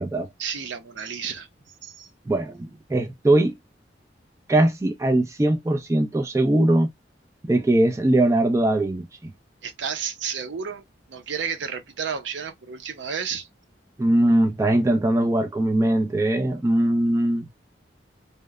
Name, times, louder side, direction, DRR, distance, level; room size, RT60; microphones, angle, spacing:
voice 1, 0.4-1.5 1.8-2.1 9.6-10.8 11.1-13.5, right 6 dB, 85° right, 0.5 m, -31 dB
voice 2, 2.3-3.5 4.5-6.9 7.4-9.3 14.0-17.5, right 1 dB, 15° right, 0.3 m, -21 dB
2.8 x 2.0 x 2.3 m
head